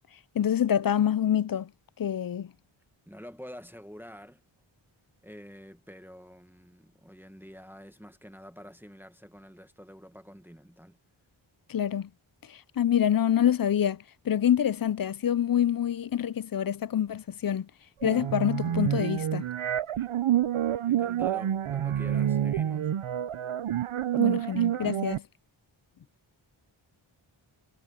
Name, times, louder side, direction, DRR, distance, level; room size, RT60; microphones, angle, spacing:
voice 1, 0.3-1.7 2.0-2.5 11.7-12.1 12.5-17.7 18.0-19.5 24.2-25.2, left 9 dB, 45° left, 0.5 m, -26 dB
voice 2, 3.1-4.4 5.2-11.0 20.8-22.9, equal, 5° right, 1.5 m, -47 dB
sound 1, 18.0-25.2, right 11 dB, 90° right, 0.7 m, -28 dB
wide cardioid pair, 80°, 48 cm